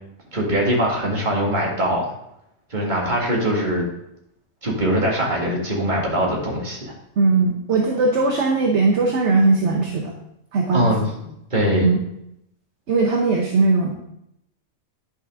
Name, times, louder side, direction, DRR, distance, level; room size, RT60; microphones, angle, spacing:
voice 1, 0.3-2.2 2.7-3.9 4.6-6.9 10.7-11.0 11.5-11.9, equal, 35° right, -2 dB, 2.2 m, -22 dB
voice 2, 7.2-10.1 10.5-11.1 11.8-12.0 12.9-13.9, right 3 dB, 60° right, 1 dB, 1.2 m, -19 dB
10.5 x 5.9 x 3.7 m, 0.79 s
omnidirectional pair, 1.3 m